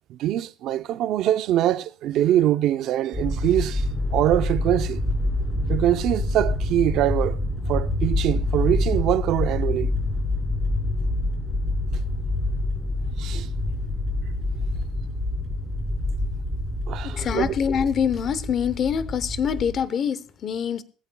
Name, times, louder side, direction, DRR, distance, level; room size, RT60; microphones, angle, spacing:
voice 1, 0.1-3.8 4.1-5.0 5.7-7.4 7.7-9.9 13.2-13.5 16.9-17.5, right 12 dB, 50° right, 0.6 m, -23 dB
sound 1, 3.1-19.8, left 2 dB, 5° left, 2.8 m, -26 dB
voice 2, 17.0-20.8, left 7 dB, 30° left, 0.8 m, -25 dB
20.5 x 14.0 x 2.3 m
cardioid pair, 165°, 0 cm